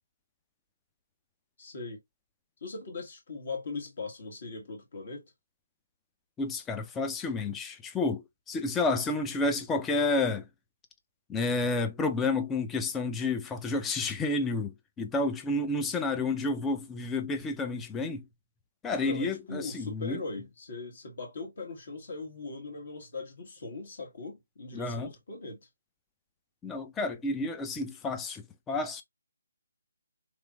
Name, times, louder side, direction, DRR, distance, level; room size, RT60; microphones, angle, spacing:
voice 1, 1.6-2.0 2.6-5.3 19.0-25.6, left 3 dB, 50° left, 1.4 m, -40 dB
voice 2, 6.4-10.5 11.3-18.2 18.8-20.2 24.7-25.1 26.6-29.0, left 3 dB, 10° left, 0.4 m, -30 dB
3.2 x 3.0 x 2.3 m
figure-of-eight pair, 145°, 0 cm